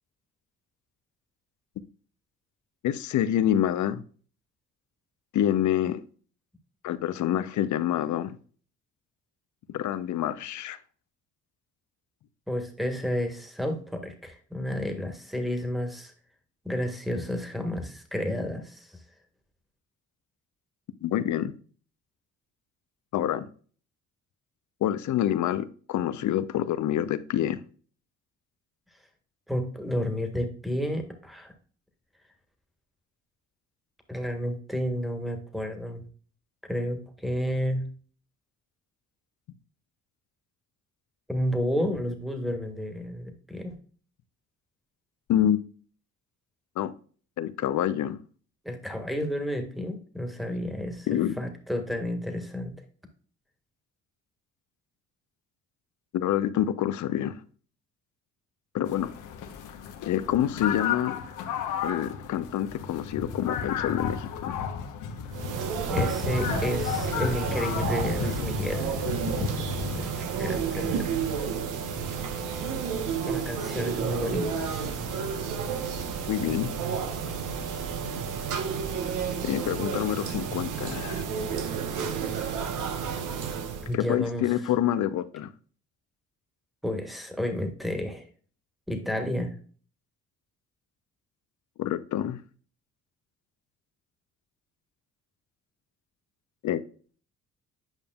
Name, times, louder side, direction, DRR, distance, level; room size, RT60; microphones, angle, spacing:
voice 1, 2.8-4.0 5.3-6.0 6.8-8.4 9.7-10.8 21.0-21.5 23.1-23.5 24.8-27.6 45.3-45.6 46.8-46.9 47.4-48.2 51.1-51.3 56.1-57.4 58.7-59.1 60.0-61.2 61.8-64.6 76.3-76.7 79.4-81.2 83.9-85.5 91.8-92.4 96.6-96.8, left 11 dB, 70° left, 0.7 m, -27 dB
voice 2, 12.5-16.1 16.6-18.9 29.5-31.5 34.1-36.0 36.7-37.9 41.3-43.8 48.6-51.1 51.4-52.7 65.9-69.0 69.9-71.1 73.3-75.0 83.8-84.5 86.8-88.2 88.9-89.5, equal, ahead, 1.6 m, -31 dB
sound 1, 58.9-70.0, left 6 dB, 90° left, 1.0 m, -33 dB
sound 2, 65.3-83.9, right 6 dB, 85° right, 1.1 m, -31 dB
9.1 x 5.2 x 2.3 m
cardioid pair, 90°, 30 cm